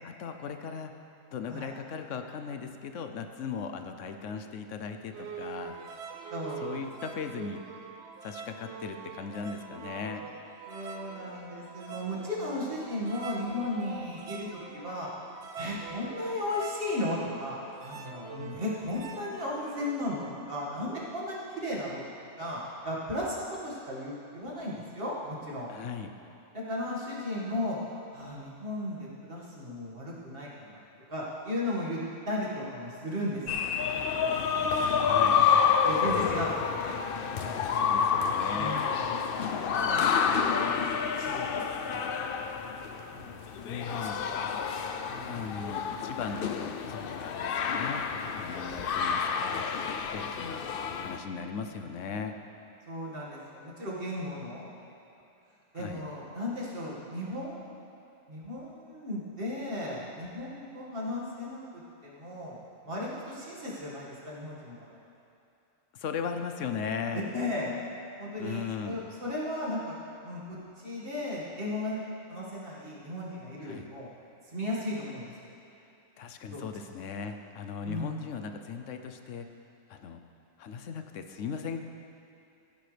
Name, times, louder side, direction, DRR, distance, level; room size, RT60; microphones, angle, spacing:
voice 1, 0.0-0.9 1.3-5.8 6.6-7.6 8.2-10.3 18.3-18.6 25.7-26.1 35.0-35.5 37.7-38.8 43.6-44.2 45.2-48.1 48.3-49.7 50.1-50.7 51.0-52.3 55.7-56.0 65.9-67.2 68.4-69.0 73.6-73.9 76.2-79.5 79.9-80.2 80.6-81.8, left 6 dB, 75° left, 7 dB, 1.1 m, -38 dB
sound 1, 5.1-20.5, right 5 dB, 65° right, 1.0 m, -44 dB
voice 2, 6.3-6.9 10.7-15.1 15.6-17.6 17.8-22.0 22.4-25.7 26.5-27.8 28.1-30.8 31.1-32.0 32.3-35.0 35.8-37.7 38.5-39.2 39.7-42.0 42.6-42.9 43.1-43.4 43.8-44.6 45.1-45.5 50.1-50.4 50.8-51.0 52.9-54.7 55.7-57.8 58.3-61.6 62.0-62.6 62.8-64.8 67.1-67.8 68.2-69.8 70.2-72.0 72.3-74.1 74.4-75.3 76.5-76.7 77.8-78.3, left 1 dB, 45° right, -6 dB, 2.2 m, -36 dB
sound 2, 33.5-51.2, left 6 dB, 60° left, 0.6 m, -29 dB
16.0 x 10.5 x 3.4 m, 2.8 s
omnidirectional pair, 1.3 m